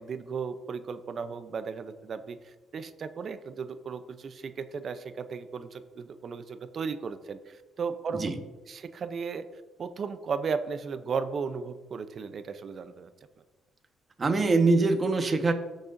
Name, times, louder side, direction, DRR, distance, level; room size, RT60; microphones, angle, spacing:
voice 1, 0.0-8.3 8.7-9.4 9.8-13.1, right 5 dB, 50° right, 11 dB, 0.7 m, -35 dB
voice 2, 14.2-15.5, right 3 dB, 35° right, 5 dB, 1.3 m, -23 dB
16.5 x 6.5 x 2.7 m, 1.2 s
cardioid pair, 90°, 0 cm